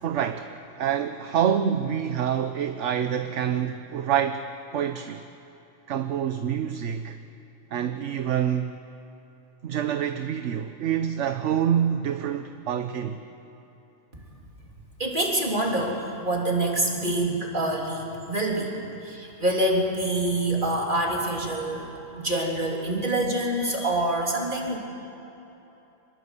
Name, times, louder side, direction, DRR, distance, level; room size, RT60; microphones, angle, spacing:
voice 1, 0.0-5.2 5.9-7.2 7.7-8.7 9.6-13.2, right 9 dB, 65° right, 1.1 m, -27 dB
voice 2, 15.0-18.7 19.0-21.9 22.2-24.8, right 1 dB, 35° right, 3.7 m, -26 dB
25.0 x 21.5 x 8.2 m
omnidirectional pair, 1.4 m